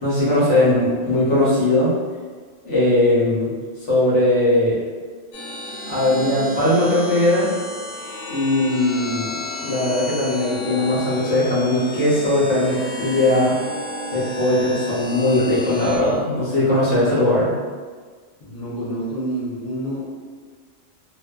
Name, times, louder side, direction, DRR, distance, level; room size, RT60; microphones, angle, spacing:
voice 1, 0.0-1.9 2.6-3.5 3.9-4.8 5.9-7.5 8.3-13.5 14.1-17.5, left 1 dB, 70° left, -8 dB, 1.1 m, -19 dB
sound 1, 5.3-16.0, left 1 dB, 85° left, 1.0 m, -32 dB
voice 2, 18.4-20.1, right 1 dB, 50° left, -9 dB, 0.6 m, -28 dB
2.5 x 2.2 x 2.2 m, 1.5 s
omnidirectional pair, 1.3 m